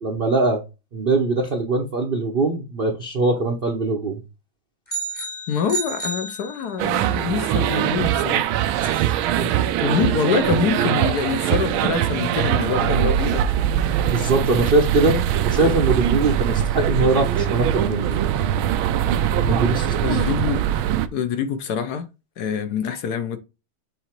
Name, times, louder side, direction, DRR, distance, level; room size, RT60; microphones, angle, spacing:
voice 1, 0.0-0.6 0.9-4.2 8.8-9.5 14.0-15.2 15.4-18.3 19.4-20.2, right 3 dB, 50° right, 0.7 m, -22 dB
sound 1, 4.9-7.1, right 3 dB, 15° left, 0.9 m, -31 dB
voice 2, 5.5-8.5 9.8-13.4 19.5-19.6 20.0-20.6 21.1-22.0 22.4-23.4, left 6 dB, 65° left, 1.1 m, -25 dB
sound 2, 6.8-21.1, right 10 dB, 85° right, 1.4 m, -22 dB
8.0 x 2.8 x 4.4 m
omnidirectional pair, 2.2 m